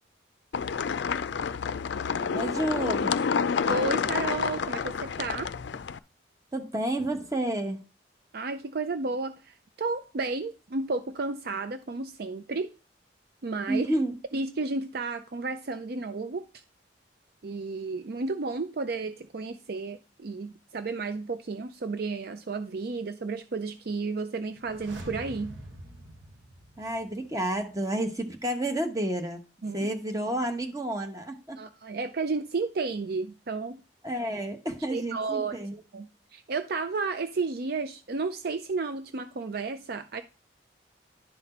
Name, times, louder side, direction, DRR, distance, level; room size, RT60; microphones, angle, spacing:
sound 1, 0.5-6.0, left 6 dB, 70° left, 0.4 m, -29 dB
voice 1, 2.3-3.2 6.5-7.8 13.7-14.1 26.8-29.4 29.7-31.6 34.0-35.8, right 1 dB, 20° right, 0.9 m, -30 dB
voice 2, 3.7-5.5 8.3-12.7 13.4-13.9 14.3-16.4 17.4-25.6 29.6-29.9 31.6-33.8 34.9-35.5 35.9-40.2, right 3 dB, 55° right, 0.5 m, -32 dB
sound 2, 24.5-27.4 27.7-27.8, right 1 dB, 85° right, 1.5 m, -44 dB
11.0 x 4.2 x 4.3 m
head